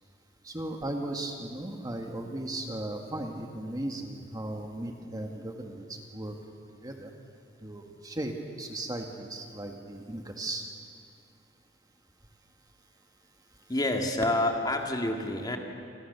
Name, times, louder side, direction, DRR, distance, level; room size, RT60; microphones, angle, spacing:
voice 1, 0.4-5.8 6.1-6.3 6.8-7.1 7.6-8.3 8.6-10.6, right 1 dB, 20° right, 3 dB, 1.7 m, -36 dB
voice 2, 13.7-15.6, left 1 dB, 20° left, 3 dB, 2.3 m, -28 dB
28.5 x 26.0 x 6.9 m, 2.3 s
head